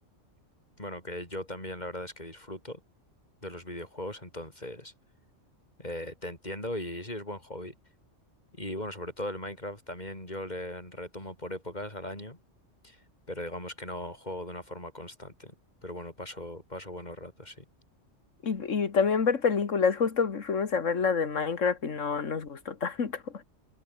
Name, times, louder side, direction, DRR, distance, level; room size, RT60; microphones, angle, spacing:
voice 1, 0.8-2.8 3.4-4.9 5.8-7.8 8.5-12.4 12.8-15.5 15.8-17.6, left 1 dB, 35° left, 7.4 m, -39 dB
voice 2, 18.4-23.4, left 5 dB, 85° left, 2.1 m, -27 dB
omnidirectional pair, 1.3 m